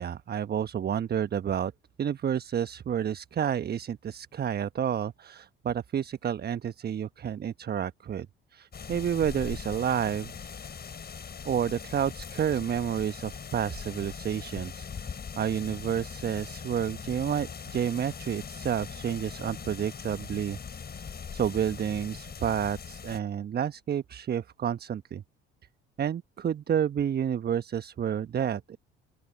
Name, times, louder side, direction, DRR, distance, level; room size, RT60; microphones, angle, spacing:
voice 1, 0.0-1.7 2.0-10.3 11.4-15.1 15.4-20.6 21.3-25.2 26.0-28.8, right 9 dB, 35° right, 1.1 m, -30 dB
sound 1, 8.7-23.2, left 6 dB, 35° left, 5.4 m, -41 dB
open air
figure-of-eight pair, 60°, 29 cm